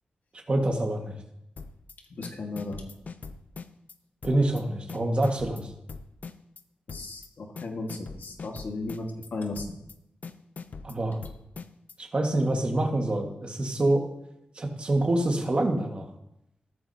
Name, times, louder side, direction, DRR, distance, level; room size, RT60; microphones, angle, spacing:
voice 1, 0.5-1.1 4.2-5.6 10.8-11.2 12.0-14.0 14.5-16.1, right 1 dB, 35° right, 1 dB, 1.7 m, -26 dB
sound 1, 1.6-1.9 2.2-4.0 4.2-4.6 4.9-6.6 6.9-7.3 7.6-9.3 9.6-10.0 10.2-12.0, left 4 dB, 55° left, 0.6 m, -41 dB
voice 2, 2.2-2.8 6.9-9.7, left 2 dB, 70° left, 2 dB, 1.7 m, -35 dB
14.0 x 13.5 x 2.8 m, 0.82 s
wide cardioid pair, 135°, 3 cm